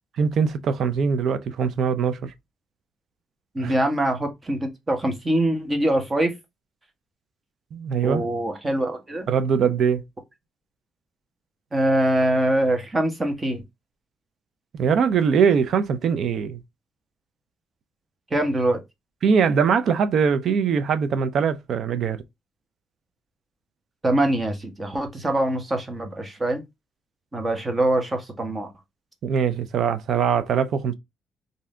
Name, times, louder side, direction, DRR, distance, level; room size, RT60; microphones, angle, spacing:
voice 1, 0.2-2.3 3.6-3.7 7.7-8.3 9.3-10.0 14.7-16.6 19.2-22.2 29.2-30.9, right 6 dB, 65° right, 0.5 m, -22 dB
voice 2, 3.5-6.3 8.0-9.3 11.7-13.6 18.3-18.8 24.0-26.6 27.3-28.7, right 1 dB, 25° right, 1.2 m, -23 dB
3.5 x 2.7 x 3.3 m
cardioid pair, 90°, 0 cm